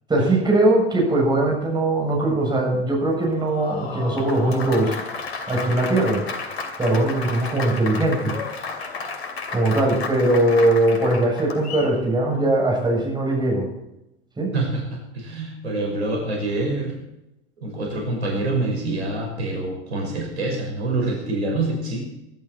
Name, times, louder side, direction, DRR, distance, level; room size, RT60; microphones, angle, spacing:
voice 1, 0.1-5.0 5.5-6.2 6.8-8.3 9.5-13.7 14.4-14.5, right 1 dB, 15° right, -2 dB, 7.9 m, -20 dB
Applause, 3.2-11.9, left 4 dB, 65° left, 2.6 m, -32 dB
voice 2, 14.5-16.9 17.6-22.0, right 2 dB, 70° right, 0 dB, 6.0 m, -26 dB
22.0 x 12.0 x 4.6 m, 0.88 s
figure-of-eight pair, 85°, 34 cm